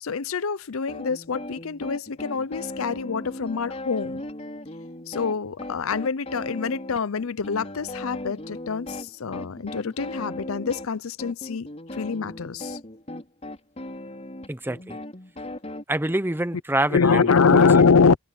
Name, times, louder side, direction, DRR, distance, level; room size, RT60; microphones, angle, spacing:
voice 1, 0.0-4.3 5.1-11.7 11.9-12.8 16.9-18.2, left 5 dB, 90° left, 0.6 m, -24 dB
sound 1, 0.9-15.8, left 1 dB, 30° left, 5.4 m, -37 dB
voice 2, 14.5-15.0 15.9-17.9, right 1 dB, 10° right, 0.9 m, -27 dB
head